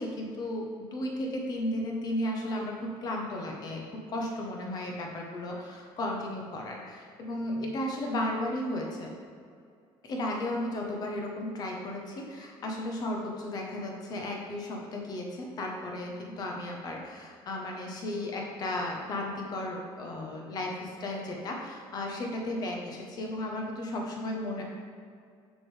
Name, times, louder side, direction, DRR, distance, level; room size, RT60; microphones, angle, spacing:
voice 1, 0.0-9.1 10.0-24.6, left 1 dB, 40° left, 0 dB, 1.1 m, -34 dB
6.8 x 6.3 x 3.4 m, 2.3 s
cardioid pair, 170°, 10 cm